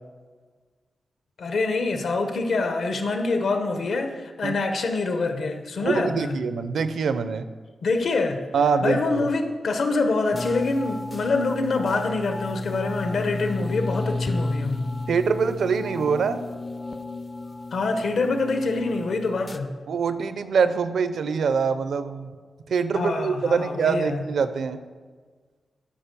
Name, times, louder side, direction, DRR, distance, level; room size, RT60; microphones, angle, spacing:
voice 1, 1.4-6.4 7.8-8.4 8.8-14.9 17.7-19.7 22.9-24.2, left 3 dB, 65° left, 6 dB, 0.9 m, -25 dB
voice 2, 5.8-7.4 8.5-9.3 15.1-16.4 19.9-22.3 22.7-24.8, right 5 dB, 80° right, 12 dB, 0.5 m, -24 dB
sound 1, 10.3-19.6, left 2 dB, 25° left, 0.4 m, -33 dB
10.0 x 5.1 x 6.8 m, 1.5 s
wide cardioid pair, 150°, 0 cm